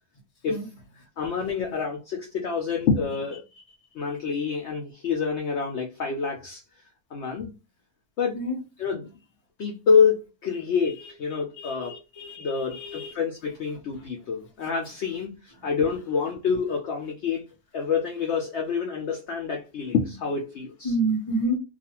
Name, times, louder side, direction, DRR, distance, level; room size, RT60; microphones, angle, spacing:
voice 1, 1.2-3.4 3.9-6.6 7.1-7.6 8.2-8.4 8.8-9.1 9.6-12.0 12.4-17.5 17.7-20.9, left 5 dB, 70° left, 0.6 m, -27 dB
voice 2, 11.6-13.1 20.8-21.6, right 2 dB, 30° left, 0.8 m, -29 dB
2.4 x 2.4 x 2.8 m
omnidirectional pair, 1.7 m